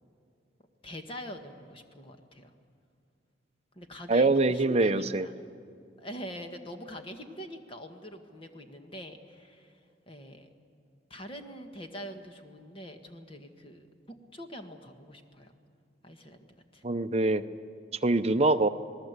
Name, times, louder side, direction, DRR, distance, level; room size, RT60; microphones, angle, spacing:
voice 1, 0.8-2.5 3.7-5.3 6.0-9.8 10.1-10.5 11.1-13.9 14.3-15.5 16.0-16.5 16.7-16.8 18.3-18.5, equal, 30° left, 5 dB, 1.6 m, -44 dB
voice 2, 4.1-5.3 16.8-17.4 18.0-18.7, right 2 dB, 35° right, 10 dB, 0.7 m, -24 dB
27.5 x 19.0 x 8.1 m, 2.4 s
head